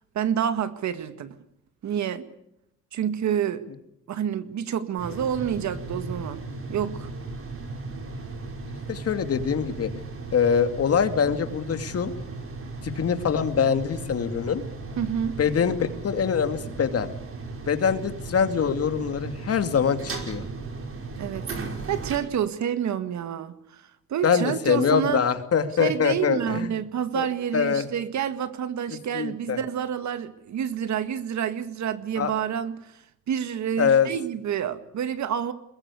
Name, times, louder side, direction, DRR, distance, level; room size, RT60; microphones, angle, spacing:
voice 1, 0.2-1.4 1.8-2.2 2.9-3.6 4.1-6.4 6.7-7.1 15.0-15.4 21.2-21.5 21.9-23.8 24.1-25.2 25.8-32.8 33.3-35.5, right 9 dB, 65° right, 11 dB, 2.0 m, -28 dB
sound 1, 5.0-22.2, right 3 dB, 45° right, 5.2 m, -36 dB
voice 2, 8.9-9.9 10.3-12.1 12.8-14.6 15.4-17.1 17.7-20.4 24.2-26.7 27.1-27.3 27.5-27.9 29.1-29.6 32.2-32.3 33.8-34.1, left 7 dB, 50° left, 9 dB, 2.6 m, -24 dB
23.0 x 21.0 x 8.4 m, 0.80 s
cardioid pair, 90°, 30 cm